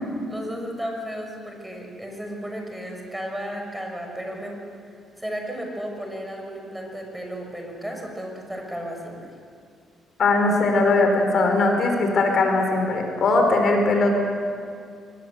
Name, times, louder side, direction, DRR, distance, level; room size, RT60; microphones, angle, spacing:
voice 1, 0.3-4.6 5.2-9.3, equal, 5° right, 1 dB, 6.1 m, -34 dB
voice 2, 10.2-14.1, left 3 dB, 60° left, 4 dB, 5.1 m, -20 dB
22.5 x 20.0 x 8.3 m, 2.3 s
cardioid pair, 90°, 0 cm